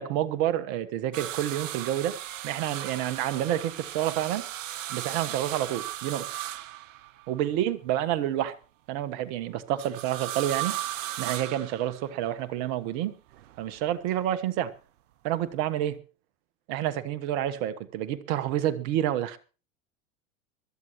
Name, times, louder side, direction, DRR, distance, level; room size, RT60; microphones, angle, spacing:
voice 1, 0.0-2.2 2.4-4.5 4.9-6.3 7.3-8.5 8.9-10.8 11.2-13.1 13.6-14.7 15.2-16.0 16.7-19.4, right 12 dB, 55° right, 1.3 m, -29 dB
sound 1, 1.1-7.4 9.8-12.3 13.3-14.1 15.5-15.6, right 13 dB, 75° right, 0.9 m, -36 dB
22.0 x 12.5 x 3.1 m
hypercardioid pair, 95°, 38 cm